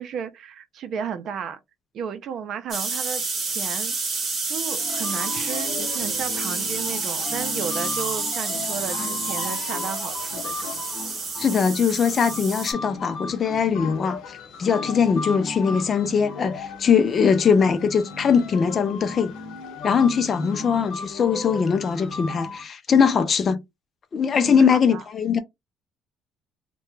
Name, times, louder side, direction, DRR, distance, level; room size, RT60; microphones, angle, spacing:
voice 1, 0.0-1.6 1.9-3.9 4.5-10.7 20.4-20.9 24.3-25.0, right 7 dB, 55° right, 0.6 m, -34 dB
Pastilla Efervescente Effervescent Pill, 2.7-12.7, right 4 dB, 35° right, 1.2 m, -29 dB
sound 1, 4.8-22.6, left 4 dB, 75° left, 0.9 m, -36 dB
voice 2, 11.4-19.3 19.8-23.6 24.1-25.4, left 6 dB, 35° left, 0.4 m, -21 dB
2.8 x 2.2 x 3.2 m
cardioid pair, 140°, 0 cm